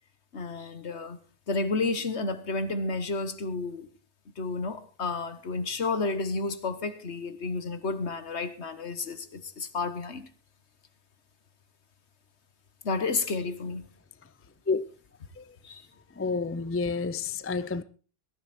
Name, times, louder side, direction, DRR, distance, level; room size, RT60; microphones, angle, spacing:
voice 1, 0.3-1.2 1.5-3.9 4.4-10.3 12.8-13.9 15.6-15.9, left 3 dB, 70° left, 1.6 m, -31 dB
voice 2, 16.2-17.8, left 4 dB, 20° left, 0.4 m, -29 dB
18.0 x 11.0 x 4.2 m
omnidirectional pair, 1.2 m